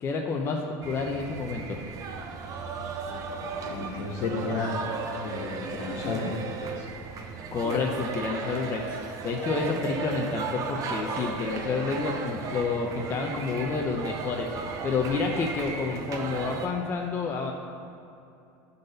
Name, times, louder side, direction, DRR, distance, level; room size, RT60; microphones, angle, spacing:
voice 1, 0.0-1.8 7.2-14.5 14.8-17.5, left 4 dB, 30° left, 0 dB, 0.7 m, -29 dB
sound 1, 0.8-16.7, right 5 dB, 40° right, 0.9 m, -35 dB
voice 2, 3.6-4.8 5.2-6.9, left 3 dB, 70° left, -5 dB, 1.6 m, -32 dB
10.5 x 4.2 x 6.7 m, 2.7 s
supercardioid pair, 135°, 9 cm